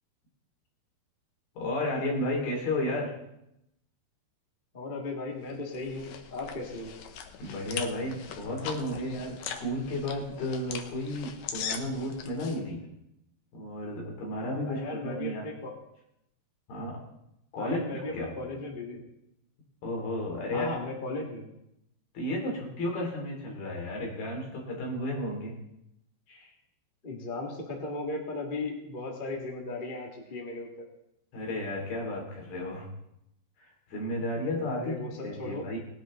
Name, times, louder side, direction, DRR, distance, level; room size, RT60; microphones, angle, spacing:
voice 1, 1.6-3.1 7.4-12.8 13.5-15.4 16.7-17.0 17.5-18.3 19.8-20.7 22.1-25.5 26.3-26.5 31.3-32.9 33.6-35.8, left 1 dB, 65° left, -1 dB, 5.0 m, -33 dB
voice 2, 4.7-6.9 14.5-15.8 17.6-19.0 20.5-21.5 27.0-30.9 34.7-35.7, left 2 dB, 30° left, 0 dB, 0.9 m, -36 dB
sound 1, 5.5-12.6, left 7 dB, 90° left, 1.6 m, -41 dB
19.5 x 10.5 x 3.8 m, 0.82 s
omnidirectional pair, 4.8 m